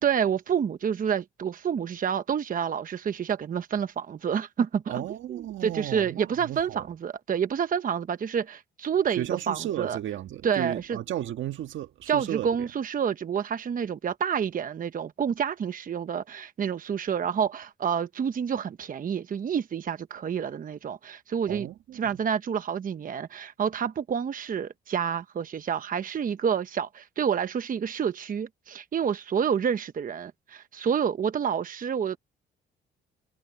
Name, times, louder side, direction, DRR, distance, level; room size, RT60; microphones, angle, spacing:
voice 1, 0.0-10.0 10.4-11.0 12.1-21.7 21.9-32.2, right 7 dB, 45° right, 0.9 m, -28 dB
voice 2, 4.9-6.8 9.2-12.7 21.5-22.0, right 12 dB, 75° right, 1.5 m, -34 dB
cardioid pair, 90°, 20 cm